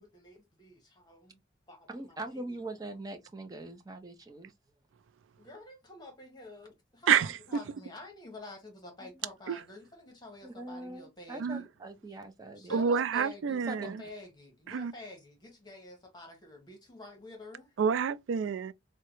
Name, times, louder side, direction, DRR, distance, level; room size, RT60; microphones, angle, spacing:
voice 1, 0.0-1.4 1.7-2.4 5.4-11.7 12.6-17.7, left 2 dB, 20° left, 1.0 m, -49 dB
voice 2, 1.9-4.5 9.0-9.3 10.4-12.9 13.5-14.0, right 2 dB, 20° right, 0.5 m, -42 dB
voice 3, 12.7-13.9 14.7-14.9 17.8-18.7, right 7 dB, 85° right, 0.3 m, -28 dB
3.7 x 2.1 x 2.9 m
head